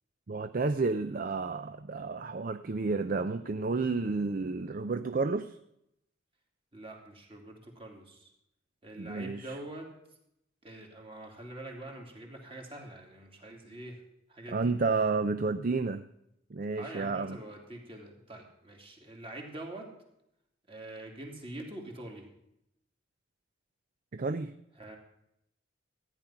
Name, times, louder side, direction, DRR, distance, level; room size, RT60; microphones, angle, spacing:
voice 1, 0.3-5.6 9.0-9.6 14.5-16.0 16.5-17.4 24.1-24.5, right 4 dB, 45° right, 10 dB, 0.5 m, -31 dB
voice 2, 6.7-8.3 8.8-9.9 10.6-14.0 14.3-14.7 16.7-19.9 20.7-22.3 24.8-25.0, right 1 dB, 30° right, 1 dB, 2.8 m, -45 dB
14.5 x 10.0 x 5.8 m, 0.79 s
head